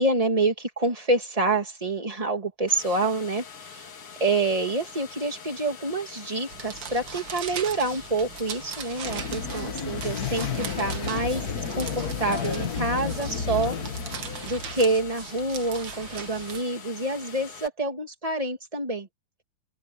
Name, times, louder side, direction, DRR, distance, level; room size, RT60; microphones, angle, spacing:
voice 1, 0.0-3.9 4.2-14.1 14.4-19.1, right 2 dB, 10° right, 2.1 m, -27 dB
sound 1, 2.7-17.7, left 6 dB, 45° left, 2.5 m, -44 dB
sound 2, 6.5-16.6, right 7 dB, 60° right, 1.2 m, -40 dB
sound 3, 9.0-15.1, left 6 dB, 65° left, 0.9 m, -32 dB
open air
omnidirectional pair, 4.1 m